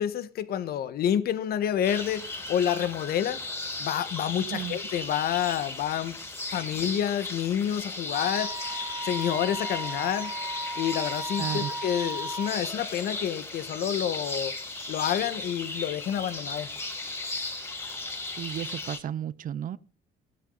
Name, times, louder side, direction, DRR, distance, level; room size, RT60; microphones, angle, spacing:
voice 1, 0.0-3.4 3.8-6.2 6.5-8.5 9.0-10.3 10.8-14.5 14.9-16.7, left 10 dB, 65° left, 1.4 m, -28 dB
sound 1, 1.8-19.0, left 2 dB, 15° left, 4.1 m, -36 dB
Wind instrument woodwind instrument, 8.1-12.6, right 1 dB, 15° right, 1.7 m, -36 dB
voice 2, 11.4-11.7 18.4-19.8, right 10 dB, 55° right, 0.9 m, -33 dB
16.0 x 12.0 x 4.0 m
cardioid pair, 110°, 17 cm